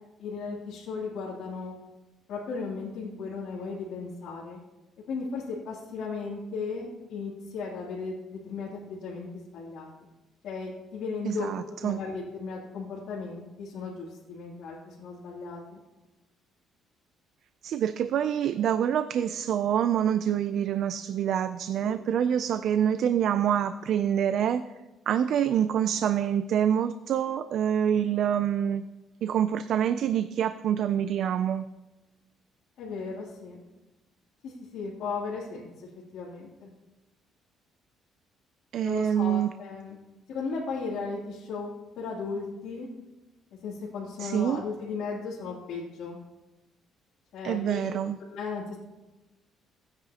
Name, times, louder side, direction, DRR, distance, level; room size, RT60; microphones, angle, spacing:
voice 1, 0.2-1.7 2.3-4.6 5.1-9.9 10.4-11.5 11.8-15.8 21.8-21.9 32.8-33.6 34.4-36.7 38.8-40.0 40.3-42.9 43.6-46.2 47.3-48.0 48.3-48.8, left 4 dB, 70° left, -7 dB, 2.9 m, -36 dB
voice 2, 11.3-12.0 17.6-24.6 25.1-28.9 29.2-31.7 38.7-39.5 44.2-44.6 47.4-48.2, right 9 dB, 60° right, 11 dB, 0.4 m, -26 dB
18.0 x 9.7 x 2.9 m, 1.1 s
cardioid pair, 140°, 0 cm